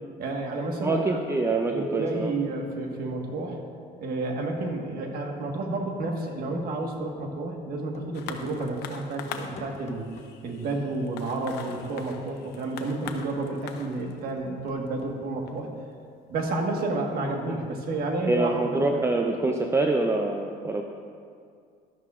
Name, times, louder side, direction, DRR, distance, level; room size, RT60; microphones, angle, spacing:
voice 1, 0.2-1.2 1.7-3.6 4.0-10.1 10.4-15.7 16.3-18.8, right 2 dB, 65° right, 2 dB, 1.5 m, -30 dB
voice 2, 0.8-2.3 18.3-20.8, right 2 dB, 15° right, 2 dB, 0.6 m, -25 dB
sound 1, 7.9-8.8 9.6-10.3 11.5-12.0 13.0-13.2 14.4-15.2, left 5 dB, 40° left, 1.0 m, -45 dB
sound 2, 8.1-17.0 17.8-17.9, left 7 dB, 80° left, 0.8 m, -43 dB
12.5 x 12.5 x 2.5 m, 2.3 s
cardioid pair, 110°, 17 cm